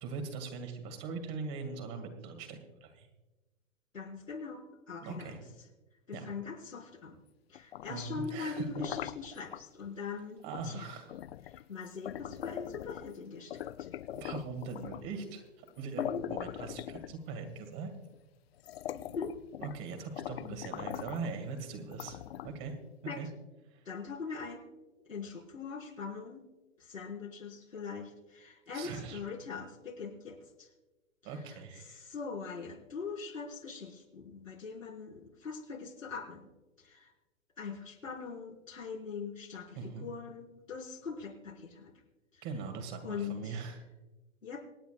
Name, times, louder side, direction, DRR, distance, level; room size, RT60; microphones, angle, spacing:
voice 1, 0.0-3.1 5.0-5.5 6.1-6.3 7.9-8.9 10.4-11.2 14.1-17.9 19.6-22.8 23.2-23.3 23.6-23.8 28.7-29.2 31.2-32.1 39.8-40.1 42.4-43.8, right 4 dB, 35° right, 5 dB, 2.1 m, -41 dB
voice 2, 3.9-5.4 6.1-7.2 7.5-10.9 11.5-13.9 16.0-16.3 18.9-19.3 20.4-20.5 23.1-23.2 23.8-24.6 25.1-26.5 26.8-30.7 31.9-36.5 36.8-37.1 37.6-41.9 42.3-42.4 43.0-43.6 44.4-44.6, left 5 dB, 85° left, -2 dB, 4.6 m, -42 dB
sound 1, 7.5-9.6 10.5-10.7 11.1-13.2 13.5-15.1 15.7-15.8 16.0-17.5 18.1-18.2 18.6-19.8 20.2-21.3 21.9-22.7, left 12 dB, 55° left, 0.5 m, -42 dB
26.5 x 9.3 x 2.4 m, 1.1 s
figure-of-eight pair, 120°, 39 cm